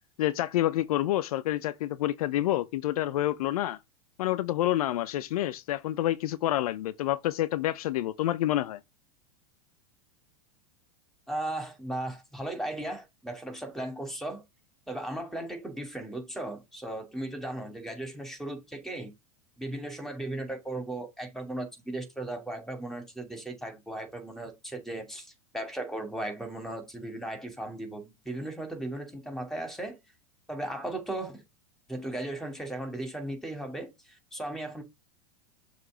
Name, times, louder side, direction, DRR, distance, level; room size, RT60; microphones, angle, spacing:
voice 1, 0.2-3.8 4.2-8.8, left 14 dB, 75° left, 0.6 m, -28 dB
voice 2, 11.3-14.4 14.9-19.1 19.6-30.0 30.5-31.4 31.9-33.9 34.3-34.8, right 1 dB, ahead, 2.4 m, -36 dB
6.7 x 3.2 x 5.0 m
hypercardioid pair, 105°, 19 cm